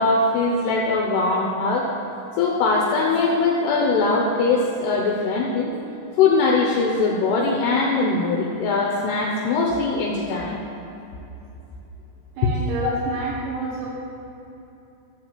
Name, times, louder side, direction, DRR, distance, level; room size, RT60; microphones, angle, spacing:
voice 1, 0.0-1.9 2.4-5.7 6.2-10.6 12.4-12.5 12.8-13.0, left 3 dB, 75° left, -1 dB, 2.5 m, -21 dB
voice 2, 12.4-13.9, right 3 dB, 70° right, -6 dB, 3.4 m, -29 dB
12.5 x 4.7 x 8.2 m, 3.0 s
omnidirectional pair, 5.7 m